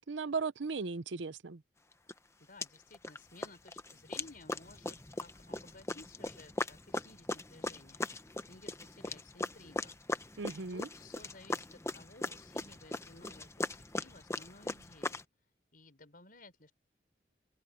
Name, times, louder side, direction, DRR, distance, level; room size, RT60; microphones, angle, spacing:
voice 1, 0.1-1.6 10.4-10.9, right 4 dB, 85° right, 0.7 m, -37 dB
sound 1, 2.1-2.2 2.6-3.2 3.4-15.2, left 2 dB, 15° left, 0.9 m, -39 dB
voice 2, 2.4-10.0 10.3-10.4 10.7-13.7 14.0-15.2 15.7-16.7, left 2 dB, 50° left, 5.1 m, -56 dB
open air
head